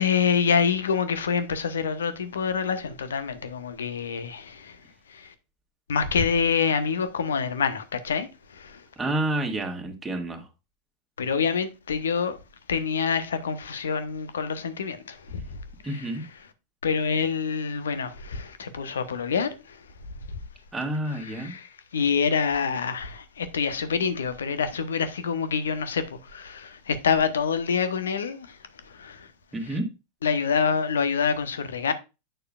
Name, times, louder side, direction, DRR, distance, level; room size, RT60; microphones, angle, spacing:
voice 1, 0.0-4.8 5.1-5.3 5.9-8.3 8.5-8.8 11.2-12.4 12.7-15.4 15.8-16.1 16.8-19.8 21.1-28.6 28.9-29.3 29.7-29.8 30.2-31.9, left 6 dB, 65° left, 1.1 m, -26 dB
voice 2, 9.0-10.4 15.8-16.2 20.7-21.5 29.5-29.9, right 1 dB, 10° right, 1.9 m, -29 dB
9.1 x 6.7 x 2.4 m
figure-of-eight pair, 90°, 0 cm